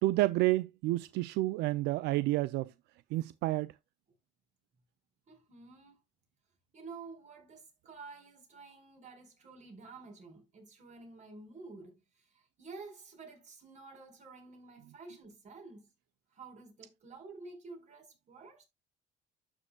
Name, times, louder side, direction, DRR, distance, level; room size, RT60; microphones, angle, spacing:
voice 1, 0.0-2.7 3.1-3.7, right 18 dB, 85° right, 0.4 m, -29 dB
voice 2, 5.3-6.0 6.7-15.9 16.3-18.6, right 3 dB, 45° right, 4.4 m, -50 dB
12.0 x 6.4 x 2.2 m
cardioid pair, 110°, 17 cm